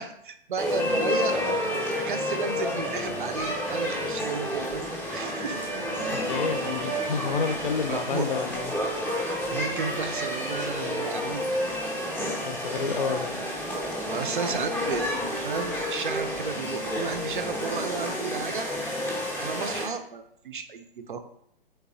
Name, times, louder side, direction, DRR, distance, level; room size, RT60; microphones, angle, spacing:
voice 1, 0.0-1.5 1.9-5.6 6.8-7.2 7.9-8.3 9.5-11.5 14.0-18.7 19.4-21.3, right 5 dB, 60° right, 9 dB, 0.4 m, -33 dB
sound 1, 0.6-19.8, equal, 5° left, 0.5 m, -30 dB
voice 2, 6.1-8.8 12.4-13.5, left 5 dB, 60° left, 7 dB, 0.5 m, -29 dB
3.3 x 3.3 x 2.4 m, 0.71 s
figure-of-eight pair, 120°, 29 cm